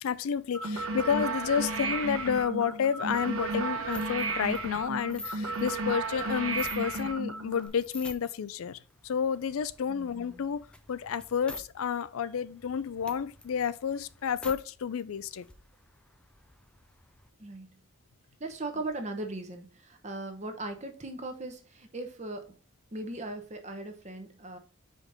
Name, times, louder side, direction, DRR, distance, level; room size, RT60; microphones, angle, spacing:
voice 1, 0.0-15.5, left 7 dB, 80° left, 0.4 m, -30 dB
sound 1, 0.5-7.7, right 2 dB, 75° right, 1.1 m, -33 dB
sound 2, 3.9-7.1 7.5-8.5 8.9-11.7 11.9-12.0 12.4-14.6 15.0-15.1 15.3-17.3, left 2 dB, 5° left, 0.4 m, -48 dB
voice 2, 9.9-10.5 17.4-17.7 18.4-22.5 22.9-24.6, right 2 dB, 30° right, 0.9 m, -38 dB
5.2 x 5.1 x 4.0 m
head